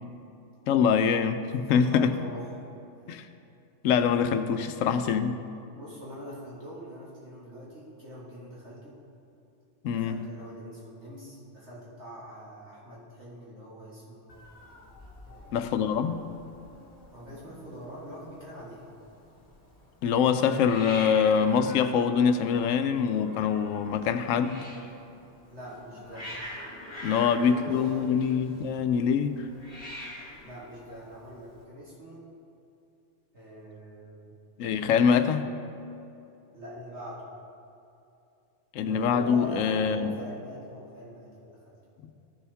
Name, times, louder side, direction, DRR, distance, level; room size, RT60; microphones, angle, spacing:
voice 1, 0.7-2.1 3.1-3.3 3.8-5.4 9.8-10.2 15.5-16.2 20.0-24.6 27.0-29.3 34.6-35.5 38.7-40.1, left 7 dB, 80° left, 9 dB, 1.0 m, -24 dB
voice 2, 1.6-2.6 5.7-9.0 9.9-14.4 15.2-16.1 17.1-18.9 25.4-26.3 27.1-28.1 30.4-32.3 33.3-34.3 36.5-37.2 38.9-41.8, equal, 60° right, -7 dB, 2.0 m, -43 dB
Hiss, 14.3-31.6, left 1 dB, 30° left, 1.6 m, -46 dB
14.0 x 6.9 x 3.4 m, 2.7 s
omnidirectional pair, 1.3 m